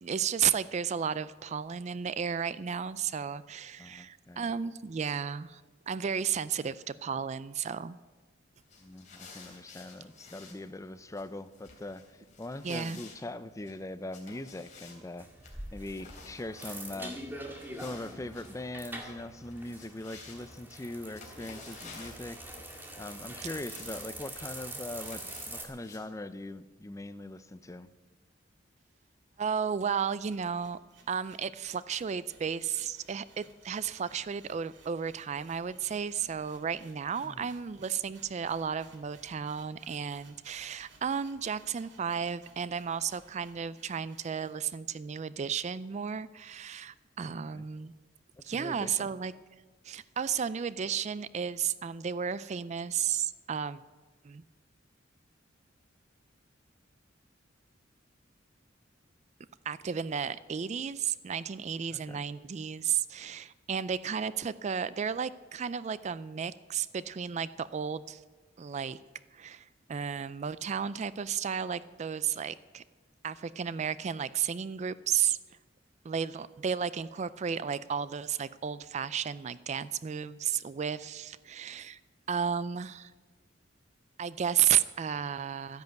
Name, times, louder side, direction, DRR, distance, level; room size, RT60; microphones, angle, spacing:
voice 1, 0.0-5.6 5.9-8.0 12.6-13.0 29.4-30.8 31.1-47.9 48.4-49.3 49.8-53.8 54.2-54.4 59.7-68.2 68.6-69.0 69.3-72.8 73.2-75.4 76.0-82.0 82.3-83.1 84.2-85.8, right 7 dB, 35° right, 17 dB, 0.4 m, -33 dB
voice 2, 3.8-4.5 8.8-15.3 15.7-17.2 17.8-22.4 23.0-27.9 37.2-37.5 47.2-47.7 48.3-49.1 61.9-62.3, left 1 dB, 15° left, 13 dB, 0.5 m, -41 dB
sound 1, 8.6-26.1, left 4 dB, 40° left, 3.2 m, -54 dB
sound 2, 15.2-25.7, right 1 dB, 10° right, 2.0 m, -44 dB
sound 3, 29.6-44.6, right 3 dB, 65° right, 2.3 m, -60 dB
13.0 x 10.5 x 8.0 m, 1.3 s
head